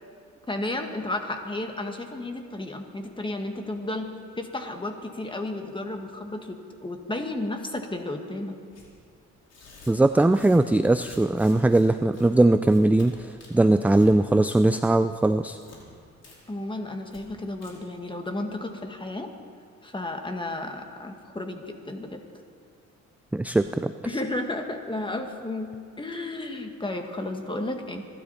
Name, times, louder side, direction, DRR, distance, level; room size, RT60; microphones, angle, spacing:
voice 1, 0.5-8.6 16.5-19.3 19.8-22.2 24.1-28.1, left 2 dB, 15° left, 4 dB, 1.9 m, -33 dB
Tearing, 8.7-8.9 9.4-11.8 12.1-12.3 12.6-13.1 13.4-14.1 14.4-14.8 15.1-15.8 16.2-16.4 16.6-16.7 17.1-17.2 17.5-17.7, left 3 dB, 55° left, 4.7 m, -50 dB
voice 2, 9.9-15.6 23.3-23.9, right 2 dB, 5° right, 10 dB, 0.3 m, -20 dB
25.0 x 12.5 x 4.3 m, 2.3 s
cardioid pair, 90°, 30 cm